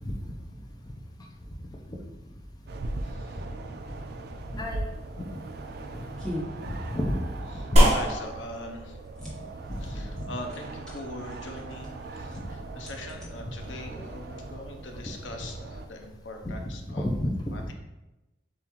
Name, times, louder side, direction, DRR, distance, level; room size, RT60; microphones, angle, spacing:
sound 1, 2.7-15.9, right 2 dB, 55° right, 0.4 m, -40 dB
voice 1, 3.0-3.4 7.6-9.0 9.8-17.1 17.5-17.7, left 1 dB, 85° left, 3 dB, 0.7 m, -42 dB
voice 2, 4.5-4.9 5.2-5.3 6.6-7.1 9.9-10.3 16.4-16.6 17.0-17.6, left 1 dB, 20° left, 0 dB, 0.5 m, -30 dB
sound 2, 6.2-14.2, equal, 5° left, 1.0 m, -44 dB
sound 3, 7.8-16.5, equal, 40° right, 1.2 m, -29 dB
7.0 x 2.5 x 3.0 m, 1.0 s
head